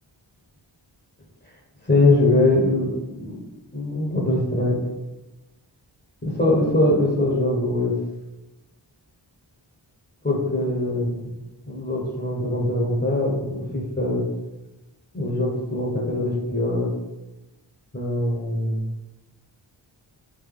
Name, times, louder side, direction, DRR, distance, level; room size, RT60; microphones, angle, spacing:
voice 1, 1.8-2.9 3.2-3.4 3.7-4.8 6.2-8.0 10.2-11.3 11.7-14.2 15.1-16.9 17.9-18.9, left 2 dB, 20° left, -3 dB, 1.1 m, -22 dB
3.7 x 2.6 x 3.7 m, 1.0 s
cardioid pair, 40°, 47 cm